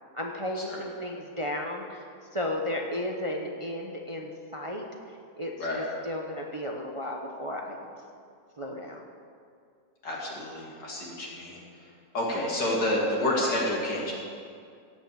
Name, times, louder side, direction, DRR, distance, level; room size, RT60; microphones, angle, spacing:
voice 1, 0.1-2.0 2.3-4.9 5.4-7.9 8.6-9.0, left 1 dB, 25° right, 1 dB, 0.7 m, -34 dB
voice 2, 10.0-11.6 12.1-14.1, left 1 dB, 90° left, -4 dB, 3.3 m, -29 dB
17.0 x 5.9 x 7.6 m, 2.3 s
omnidirectional pair, 1.8 m